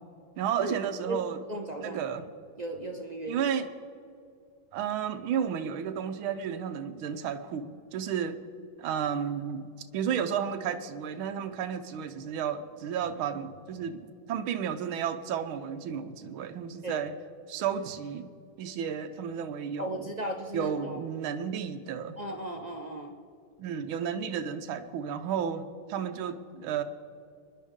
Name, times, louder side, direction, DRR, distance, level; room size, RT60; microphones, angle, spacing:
voice 1, 0.4-1.4 1.8-2.3 3.3-3.7 4.7-8.4 8.8-14.0 14.3-17.1 17.5-18.3 18.6-20.1 20.5-22.2 23.6-25.6 25.9-26.8, right 8 dB, 85° right, 8 dB, 1.6 m, -32 dB
voice 2, 1.5-2.0 2.6-3.4 16.8-17.0 19.8-21.1 22.2-23.2, right 1 dB, 50° right, 2 dB, 0.5 m, -36 dB
25.5 x 10.5 x 3.7 m, 2.4 s
omnidirectional pair, 2.2 m